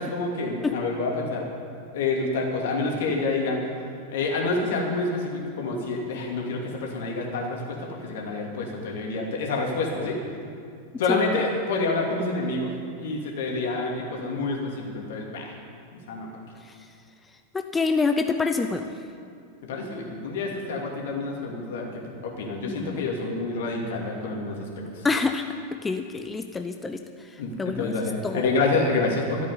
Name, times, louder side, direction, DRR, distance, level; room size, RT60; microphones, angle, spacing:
voice 1, 0.0-1.5 1.9-3.6 4.1-10.2 11.0-12.7 13.0-15.5 16.1-16.3 19.6-24.7 24.9-25.1 27.4-29.5, left 3 dB, 55° left, 0 dB, 2.7 m, -28 dB
voice 2, 17.5-18.9 22.7-23.0 25.0-25.4 25.7-28.4, left 4 dB, 15° left, 7 dB, 0.6 m, -27 dB
13.5 x 8.4 x 9.5 m, 2.3 s
figure-of-eight pair, 90°, 0 cm